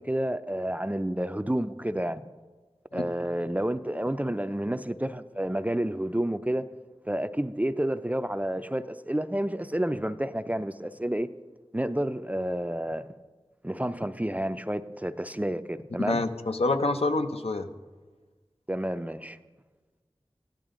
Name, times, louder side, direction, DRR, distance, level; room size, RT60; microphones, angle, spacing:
voice 1, 0.0-2.3 2.9-6.7 7.1-11.3 11.7-13.1 13.6-16.2 18.7-19.4, right 1 dB, 15° right, 0.4 m, -30 dB
voice 2, 16.0-17.7, left 2 dB, 75° left, 0.7 m, -27 dB
14.5 x 10.5 x 3.7 m
wide cardioid pair, 40°, 10 cm